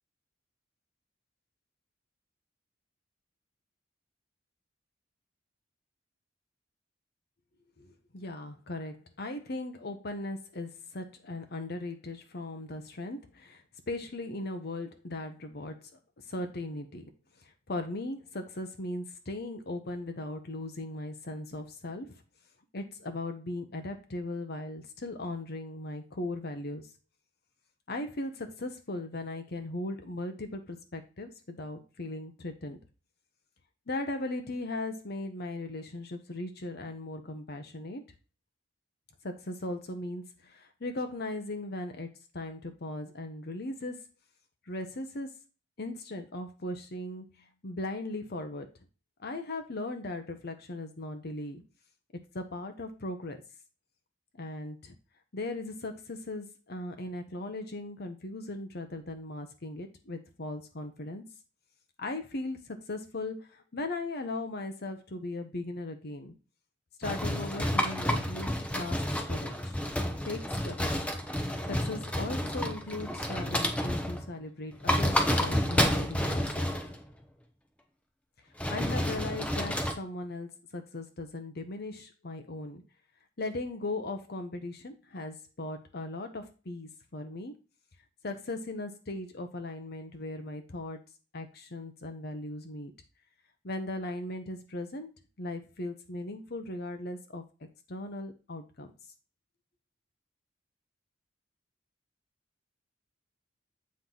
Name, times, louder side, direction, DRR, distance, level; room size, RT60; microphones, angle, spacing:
voice 1, 8.1-15.8 16.3-17.1 17.7-22.2 22.7-26.9 27.9-32.8 33.9-38.0 39.2-42.1 42.3-44.0 44.7-45.3 45.8-48.7 49.2-51.6 52.3-53.4 54.4-54.9 55.3-61.2 62.0-66.3 67.0-69.0 69.3-69.8 70.2-71.1 71.7-76.7 78.7-82.8 83.4-87.5 88.2-91.0 91.3-92.9 93.6-95.1 95.4-97.4 97.9-98.9, left 2 dB, 55° left, 6 dB, 0.9 m, -38 dB
sound 1, 67.0-74.3 74.7-77.0 78.6-79.9, equal, 5° left, 0.8 m, -30 dB
7.4 x 4.5 x 3.9 m, 0.31 s
head